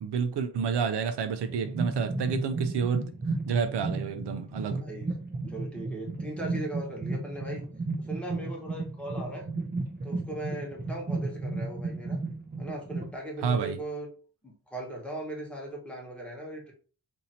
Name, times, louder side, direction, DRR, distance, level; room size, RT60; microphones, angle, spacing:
voice 1, 0.0-3.1 3.5-4.8 13.4-13.8, right 6 dB, 75° right, 0.5 m, -29 dB
sound 1, 1.5-13.1, right 3 dB, 25° right, 0.6 m, -34 dB
voice 2, 4.6-5.1 5.5-7.6 8.0-9.5 10.0-12.2 12.6-14.1 14.4-16.7, right 1 dB, 5° left, 1.1 m, -38 dB
2.8 x 2.7 x 4.2 m
wide cardioid pair, 140°, 41 cm